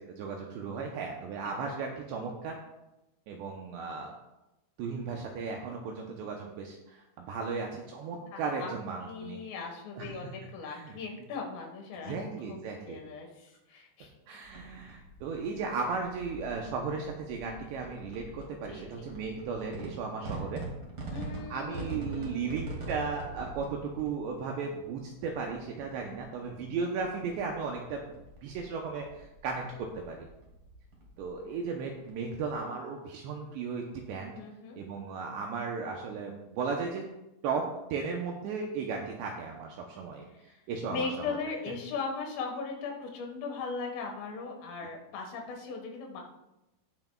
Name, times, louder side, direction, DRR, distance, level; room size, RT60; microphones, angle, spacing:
voice 1, 0.0-2.6 3.3-4.1 4.8-9.4 10.0-10.1 10.7-11.0 12.0-13.0 14.3-20.6 21.5-28.1 28.4-30.3 31.2-34.3 34.8-37.0 37.4-37.6 37.9-40.2 40.7-41.4, right 5 dB, 85° right, 1 dB, 2.5 m, -35 dB
voice 2, 8.3-8.7 9.0-14.1 18.7-19.1 21.1-22.6 34.3-34.8 40.3-40.6 40.9-46.2, left 4 dB, 80° left, 1 dB, 4.0 m, -39 dB
sound 1, 14.4-32.6, right 2 dB, 45° right, 1.5 m, -44 dB
18.0 x 5.9 x 2.3 m, 0.93 s
omnidirectional pair, 5.8 m